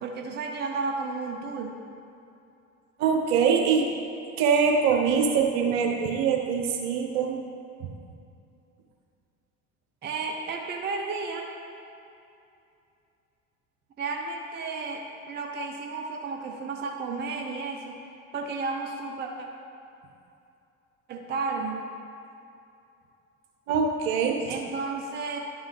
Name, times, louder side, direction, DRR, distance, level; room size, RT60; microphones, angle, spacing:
voice 1, 0.0-1.8 10.0-11.5 14.0-18.0 18.3-19.5 21.1-21.9 24.5-25.4, right 4 dB, 25° right, 2 dB, 0.7 m, -33 dB
voice 2, 3.0-3.9 4.4-7.4 23.7-24.5, right 6 dB, 60° right, 2 dB, 1.0 m, -23 dB
10.5 x 5.4 x 3.2 m, 2.6 s
figure-of-eight pair, 65°, 41 cm